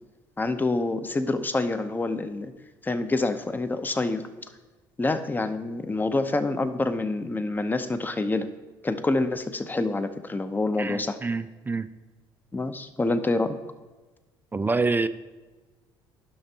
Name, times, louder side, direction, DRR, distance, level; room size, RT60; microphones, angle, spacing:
voice 1, 0.4-2.5 2.8-4.3 5.0-8.5 8.8-11.2 12.5-13.6, left 2 dB, 15° left, 10 dB, 0.6 m, -27 dB
voice 2, 10.8-11.9 14.5-15.1, right 3 dB, 20° right, 12 dB, 0.3 m, -26 dB
12.0 x 5.9 x 2.8 m, 1.2 s
supercardioid pair, 75°, 11 cm